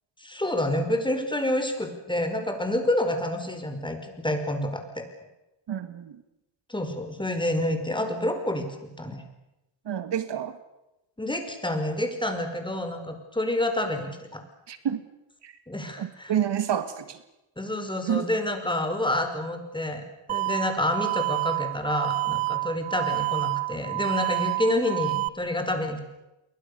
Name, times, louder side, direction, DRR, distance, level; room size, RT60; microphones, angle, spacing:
voice 1, 0.2-5.1 6.7-9.2 11.2-14.4 15.7-16.3 17.6-26.0, left 1 dB, 10° left, 6 dB, 5.1 m, -28 dB
voice 2, 5.7-6.2 9.9-10.6 14.7-15.0 15.4-15.6 16.0-17.2 18.1-18.3, right 9 dB, 60° right, 12 dB, 1.8 m, -29 dB
sound 1, 20.3-25.3, right 23 dB, 80° right, 0.9 m, -28 dB
28.0 x 23.0 x 6.9 m, 0.94 s
cardioid pair, 95°, 47 cm